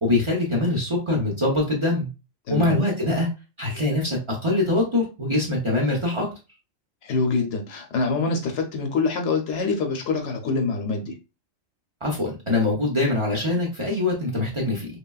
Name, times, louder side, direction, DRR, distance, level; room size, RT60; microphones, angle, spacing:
voice 1, 0.0-2.1 2.5-3.3 3.6-6.3 12.0-14.9, left 2 dB, 30° right, 0.7 m, -23 dB
voice 2, 2.5-2.8 7.0-11.1, left 4 dB, 75° left, 0.9 m, -25 dB
3.1 x 2.2 x 2.2 m
omnidirectional pair, 1.3 m